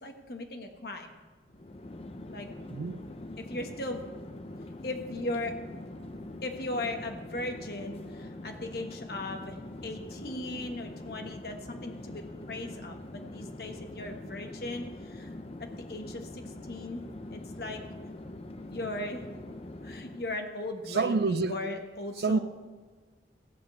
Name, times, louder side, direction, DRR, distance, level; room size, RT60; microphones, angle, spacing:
voice 1, 0.0-1.2 2.3-2.5 3.4-4.0 4.8-5.5 6.4-9.6 9.8-15.3 15.9-17.0 17.3-17.8 18.7-19.3 19.8-22.4, left 2 dB, 55° left, 1.3 m, -37 dB
Chatter / Fixed-wing aircraft airplane, 1.5-20.4, left 1 dB, 35° left, 0.6 m, -43 dB
voice 2, 2.7-3.0 20.9-21.6 22.2-22.4, right 4 dB, 60° right, 0.4 m, -27 dB
15.0 x 5.2 x 7.8 m
head